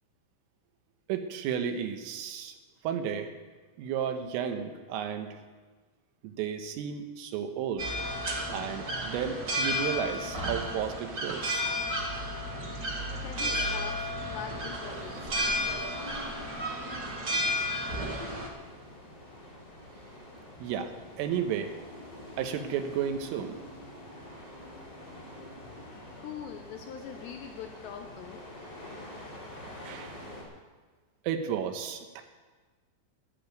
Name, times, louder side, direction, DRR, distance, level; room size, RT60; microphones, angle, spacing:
voice 1, 1.1-2.6 2.8-3.3 3.8-5.4 6.2-7.9 8.5-11.7 20.6-21.8 22.4-23.6 29.9-30.2 31.3-32.2, right 8 dB, 80° right, 6 dB, 3.7 m, -33 dB
sound 1, 7.8-18.5, equal, 60° right, 1.0 m, -32 dB
voice 2, 13.2-15.7 25.8-28.4, left 8 dB, 75° left, 4 dB, 2.7 m, -43 dB
sound 2, 14.8-30.4, left 1 dB, 20° left, 4.5 m, -47 dB
12.5 x 11.5 x 9.3 m, 1.4 s
omnidirectional pair, 5.9 m